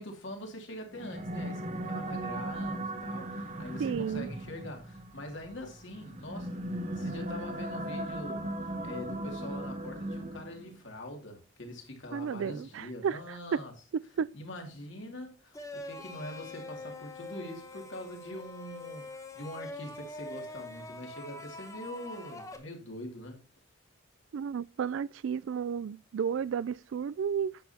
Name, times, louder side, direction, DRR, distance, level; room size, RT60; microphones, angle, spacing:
voice 1, 0.0-6.6 6.9-13.7 14.3-23.4, left 1 dB, 60° left, 2.4 m, -43 dB
sound 1, 0.9-10.8, right 1 dB, 35° right, 0.8 m, -37 dB
voice 2, 3.8-4.3 12.1-13.6 14.2-14.3 24.3-27.6, right 7 dB, 65° right, 0.3 m, -32 dB
sound 2, 15.5-22.6, left 2 dB, 15° left, 1.0 m, -44 dB
10.0 x 7.4 x 2.8 m
head